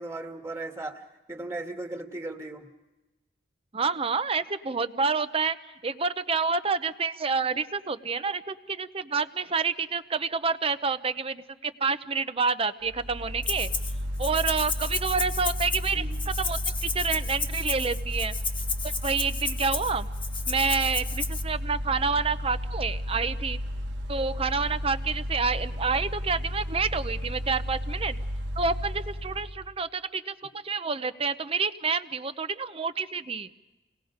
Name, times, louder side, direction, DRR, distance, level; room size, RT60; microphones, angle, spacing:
voice 1, 0.0-2.7 15.9-16.2, right 2 dB, 15° right, 2 dB, 1.9 m, -37 dB
voice 2, 3.7-5.6 5.8-13.7 14.2-18.4 19.0-20.1 20.5-23.6 24.1-28.2 28.6-33.5, right 4 dB, 30° right, 12 dB, 0.7 m, -28 dB
Mechanical fan, 12.9-29.7, equal, 70° right, 1.3 m, -33 dB
Rattle (instrument), 13.4-13.9 14.2-21.4, left 4 dB, 30° left, 1.5 m, -33 dB
28.5 x 19.0 x 5.1 m, 1.1 s
head